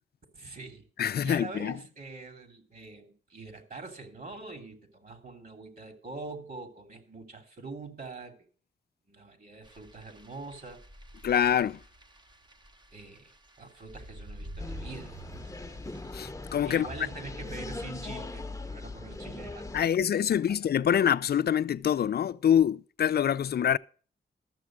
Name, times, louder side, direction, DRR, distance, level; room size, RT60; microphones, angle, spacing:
voice 1, 0.3-0.9 1.2-8.3 9.1-10.8 12.9-15.2 16.6-20.6, right 3 dB, 50° right, 3.1 m, -44 dB
voice 2, 1.0-1.7 11.2-11.8 16.1-16.9 19.7-23.8, left 9 dB, 55° left, 0.5 m, -25 dB
sound 1, 9.6-16.1, right 1 dB, 25° right, 1.0 m, -48 dB
sound 2, 14.6-19.8, left 2 dB, 15° left, 0.9 m, -40 dB
13.0 x 7.0 x 6.2 m
cardioid pair, 75°, 19 cm